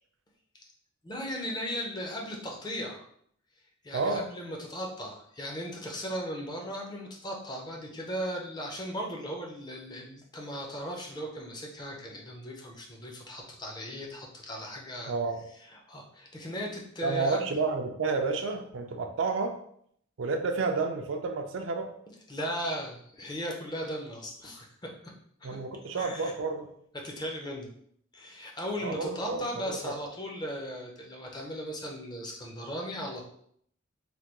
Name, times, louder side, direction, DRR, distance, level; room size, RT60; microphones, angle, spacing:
voice 1, 1.0-3.0 3.8-15.1 15.7-17.5 22.3-25.1 25.4-25.6 26.0-26.3 26.9-27.7 28.1-33.3, equal, 20° left, 0 dB, 0.5 m, -37 dB
voice 2, 3.9-4.2 15.1-15.4 17.0-19.5 20.2-21.9 25.4-26.7 28.8-29.9, right 4 dB, 65° right, 5 dB, 0.4 m, -30 dB
3.3 x 2.2 x 2.9 m, 0.67 s
head